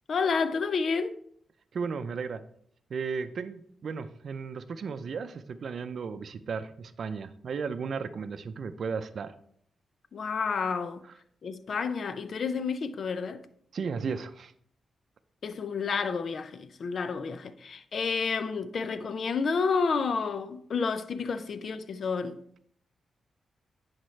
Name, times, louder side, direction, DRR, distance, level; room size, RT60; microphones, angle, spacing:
voice 1, 0.1-1.2 10.1-11.0 11.4-13.4 15.4-22.4, left 5 dB, 60° left, 0.5 m, -30 dB
voice 2, 1.7-2.4 2.9-9.3 13.7-14.5, right 5 dB, 65° right, 0.5 m, -35 dB
10.5 x 4.3 x 3.2 m
cardioid pair, 65°, 0 cm